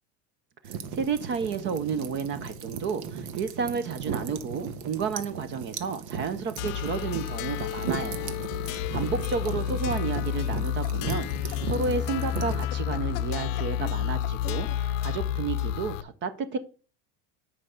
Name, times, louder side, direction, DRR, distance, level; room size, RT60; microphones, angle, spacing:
sound 1, 0.6-12.6, right 6 dB, 75° right, 1.5 m, -37 dB
voice 1, 0.9-8.4 8.6-16.6, right 5 dB, 25° right, 0.6 m, -31 dB
sound 2, 6.6-16.0, left 11 dB, 65° left, 0.7 m, -30 dB
sound 3, 9.0-14.9, left 14 dB, 25° left, 0.4 m, -45 dB
9.9 x 5.5 x 6.4 m
cardioid pair, 170°, 41 cm